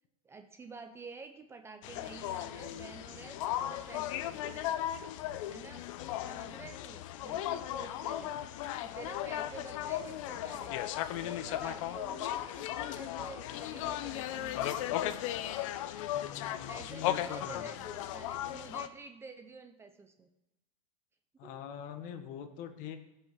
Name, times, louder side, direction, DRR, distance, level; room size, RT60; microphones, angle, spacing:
voice 1, 0.2-4.8 5.5-5.9 6.2-8.4 8.8-10.8 11.1-15.0 16.7-20.3 21.4-21.5, right 4 dB, 15° right, 6 dB, 0.7 m, -49 dB
sound 1, 1.8-18.9, left 12 dB, 60° left, 0.8 m, -36 dB
voice 2, 16.1-17.7 21.4-23.0, left 9 dB, 45° left, 8 dB, 1.3 m, -43 dB
16.0 x 5.7 x 6.2 m, 0.94 s
supercardioid pair, 140°, 19 cm